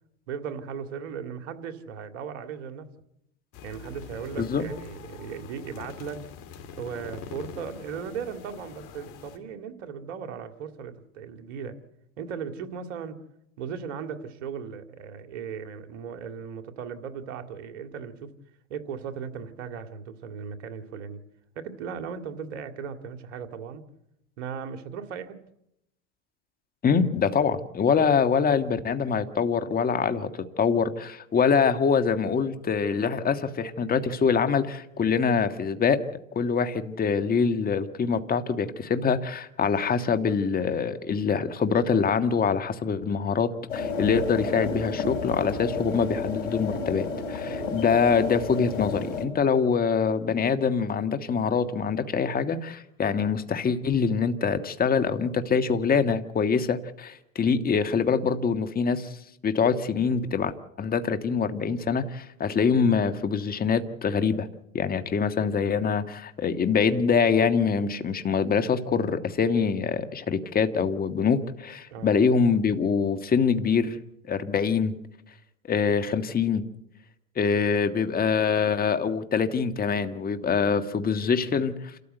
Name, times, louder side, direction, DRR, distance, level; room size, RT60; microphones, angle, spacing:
voice 1, 0.3-2.9 3.6-6.2 6.7-11.8 12.2-13.2 13.6-18.3 18.7-21.2 21.6-23.8 24.4-25.4 47.4-47.7 71.9-72.2, right 7 dB, 75° right, 8 dB, 2.4 m, -37 dB
sound 1, 3.5-9.4, left 7 dB, 55° left, 3.0 m, -44 dB
voice 2, 4.4-4.7 26.8-36.0 36.3-59.1 59.4-60.5 60.8-64.5 64.7-74.0 74.3-74.9 75.7-76.6 77.3-81.7, left 6 dB, 25° left, 9 dB, 1.6 m, -24 dB
sound 2, 43.7-49.3, left 4 dB, 85° left, 4.1 m, -31 dB
28.5 x 13.5 x 8.1 m, 0.82 s
hypercardioid pair, 100°, 37 cm